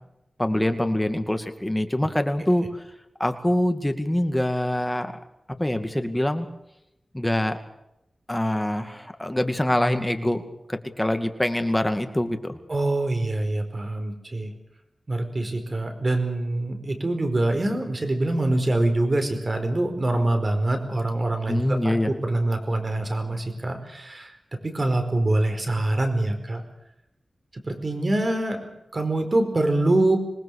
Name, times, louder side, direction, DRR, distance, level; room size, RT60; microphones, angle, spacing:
voice 1, 0.4-2.8 3.2-5.1 5.6-6.5 7.1-7.6 8.3-12.6 21.5-22.1, left 1 dB, 15° left, 7 dB, 2.3 m, -24 dB
voice 2, 12.7-14.5 15.1-21.9 22.2-24.3 24.6-26.6 27.5-30.2, right 2 dB, 40° right, 6 dB, 4.7 m, -24 dB
26.0 x 19.5 x 6.6 m, 0.87 s
wide cardioid pair, 75°, 0 cm